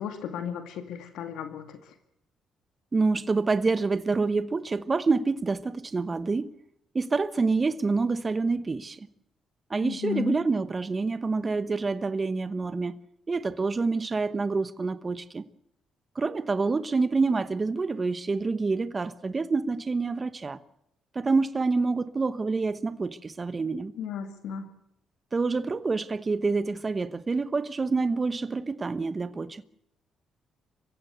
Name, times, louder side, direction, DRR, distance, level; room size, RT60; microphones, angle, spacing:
voice 1, 0.0-1.9 9.8-10.4 24.0-24.6, left 8 dB, 85° left, 2.3 m, -34 dB
voice 2, 2.9-6.6 6.9-9.1 9.7-13.0 13.3-15.4 16.1-20.6 21.1-23.9 25.3-29.6, right 4 dB, 30° right, 1.0 m, -27 dB
24.5 x 15.5 x 8.0 m
cardioid pair, 90°, 0 cm